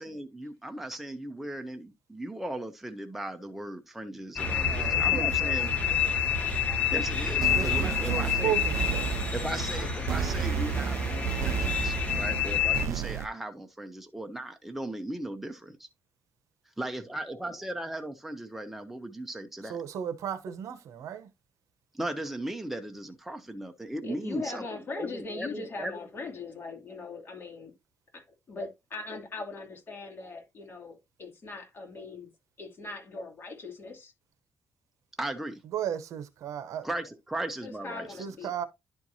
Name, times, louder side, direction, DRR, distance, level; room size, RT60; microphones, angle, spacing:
voice 1, 0.0-5.7 6.9-8.5 9.3-15.9 16.8-19.8 21.9-24.6 25.0-25.9 35.2-35.6 36.8-38.1, right 1 dB, 5° right, 0.8 m, -37 dB
sound 1, 4.4-12.9, left 7 dB, 25° left, 1.5 m, -28 dB
voice 2, 4.6-5.5 5.9-6.4 7.5-9.1 9.8-9.9 19.7-21.3 35.7-36.9 38.2-38.6, right 10 dB, 80° right, 0.8 m, -35 dB
sound 2, 7.4-13.3, right 11 dB, 60° right, 0.4 m, -33 dB
voice 3, 24.0-27.7 28.1-32.3 32.6-34.1 37.6-38.5, left 3 dB, 40° left, 2.7 m, -40 dB
11.0 x 4.5 x 2.7 m
cardioid pair, 125°, 5 cm